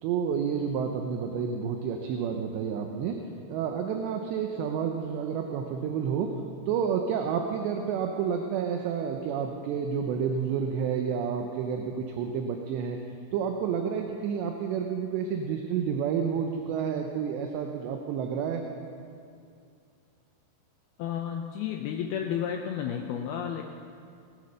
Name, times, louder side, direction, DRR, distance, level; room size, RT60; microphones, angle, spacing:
voice 1, 0.0-3.2 3.5-6.4 6.7-13.0 13.3-18.6, right 7 dB, 80° right, 3 dB, 2.8 m, -30 dB
voice 2, 21.0-23.6, left 8 dB, 90° left, 2 dB, 2.2 m, -32 dB
19.0 x 9.8 x 6.6 m, 2.4 s
omnidirectional pair, 5.4 m